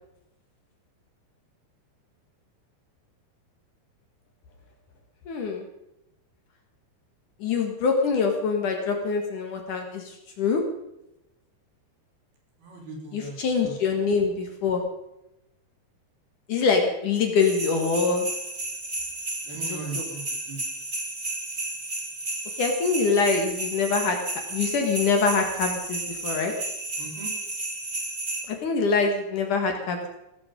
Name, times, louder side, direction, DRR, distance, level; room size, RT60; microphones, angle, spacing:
voice 1, 5.3-5.6 7.4-10.0 10.4-10.6 13.1-14.8 16.5-18.3 20.0-20.1 22.6-24.2 24.5-26.5 28.6-30.2, left 5 dB, 55° left, 3 dB, 2.9 m, -24 dB
voice 2, 12.6-13.4 13.6-13.7 19.5-20.6 27.0-27.3, right 3 dB, 65° right, 0 dB, 5.7 m, -38 dB
sound 1, 17.4-28.4, right 2 dB, 20° right, 2.5 m, -33 dB
17.0 x 14.5 x 5.2 m, 0.89 s
omnidirectional pair, 4.8 m